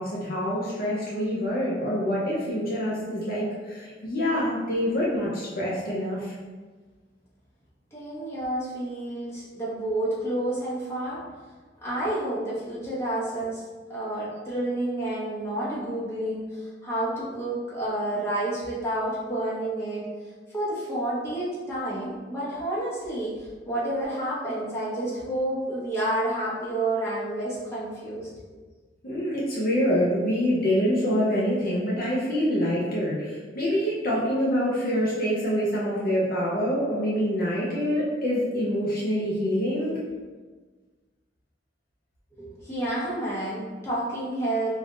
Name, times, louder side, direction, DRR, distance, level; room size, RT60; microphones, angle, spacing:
voice 1, 0.0-6.3 29.0-40.0, equal, 55° left, -6 dB, 0.7 m, -26 dB
voice 2, 7.9-11.2 11.8-13.6 13.9-20.1 20.5-28.3 42.3-44.7, right 1 dB, 15° left, -9 dB, 1.2 m, -29 dB
3.5 x 2.6 x 3.8 m, 1.4 s
head